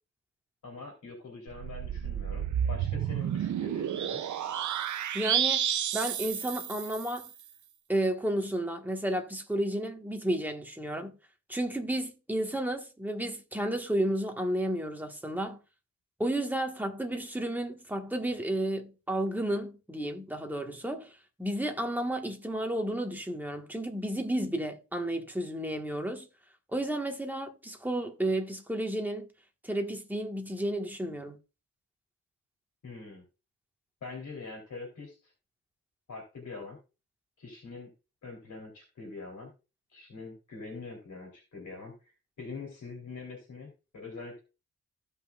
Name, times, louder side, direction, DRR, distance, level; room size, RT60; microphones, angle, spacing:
voice 1, 0.6-4.2 32.8-33.2 34.0-35.3 36.1-36.8 37.4-37.9 38.2-39.5 39.9-42.1 42.4-44.4, left 4 dB, 90° left, 3.2 m, -44 dB
sound 1, 1.5-7.3, right 9 dB, 90° right, 0.6 m, -31 dB
voice 2, 5.1-5.7 5.9-7.3 7.9-11.1 11.5-15.6 16.2-26.3 26.7-29.3 29.6-31.4, right 1 dB, 5° right, 1.4 m, -32 dB
15.5 x 5.4 x 2.3 m
wide cardioid pair, 145°, 29 cm